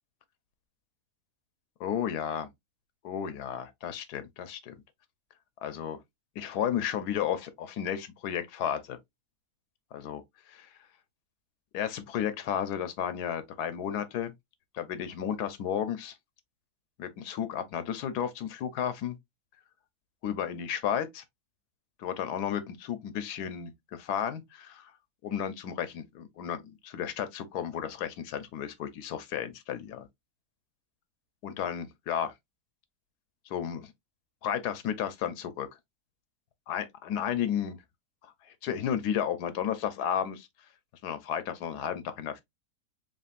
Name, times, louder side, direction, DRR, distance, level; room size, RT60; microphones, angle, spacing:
voice 1, 1.8-2.5 3.0-4.7 5.6-6.0 6.4-9.0 9.9-10.2 10.5-10.7 11.7-14.3 14.7-16.2 17.0-19.2 20.2-21.2 22.0-24.9 25.2-30.1 31.4-32.3 33.5-33.9 34.4-35.7 36.7-37.8 38.2-38.3 38.6-40.5 41.0-42.4, left 9 dB, 90° left, 1.3 m, -33 dB
4.1 x 3.7 x 2.5 m
omnidirectional pair, 1.6 m